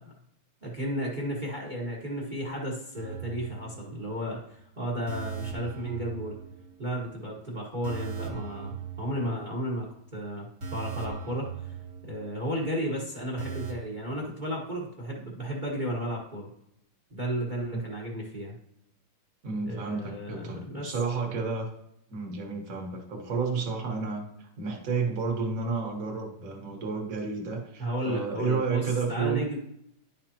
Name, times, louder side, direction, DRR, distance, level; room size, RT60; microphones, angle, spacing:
voice 1, 0.6-6.3 6.8-11.8 12.1-16.5 17.1-18.6 19.6-21.0 27.8-29.6, equal, 30° right, -2 dB, 1.1 m, -33 dB
sound 1, 3.0-4.2 4.5-4.6 5.1-7.0 7.3-7.4 7.8-9.8 10.1-10.2 10.6-12.5 12.8-12.9 13.4-13.7, right 6 dB, 60° right, 2.1 m, -39 dB
voice 2, 19.4-21.7 22.1-29.4, right 4 dB, 45° right, 1 dB, 1.5 m, -31 dB
10.5 x 5.0 x 2.9 m, 0.76 s
omnidirectional pair, 2.3 m